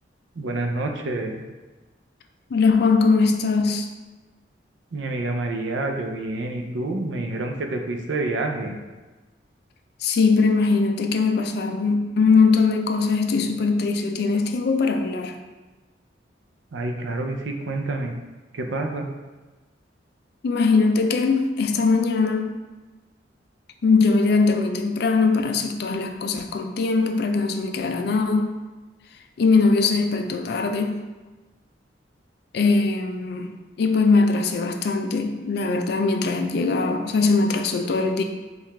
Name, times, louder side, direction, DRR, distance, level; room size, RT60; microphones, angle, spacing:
voice 1, 0.4-1.4 4.9-8.8 16.7-18.1 18.5-19.1, right 2 dB, 90° right, 4 dB, 0.5 m, -28 dB
voice 2, 2.5-3.9 10.0-15.3 20.4-22.6 23.8-28.6 29.4-31.0 32.5-33.5 33.8-38.2, left 4 dB, 60° left, 6 dB, 0.4 m, -21 dB
4.6 x 2.4 x 3.3 m, 1.2 s
head